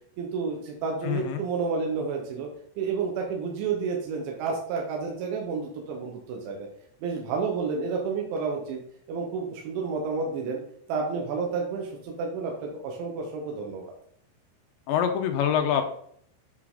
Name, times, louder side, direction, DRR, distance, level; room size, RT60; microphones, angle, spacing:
voice 1, 0.2-2.5 2.8-6.7 7.0-8.8 9.1-10.6 10.9-13.9, right 5 dB, 85° right, 0 dB, 3.4 m, -30 dB
voice 2, 1.1-1.4 14.9-15.9, left 8 dB, 85° left, 5 dB, 3.0 m, -25 dB
8.8 x 4.8 x 3.7 m, 0.64 s
omnidirectional pair, 5.2 m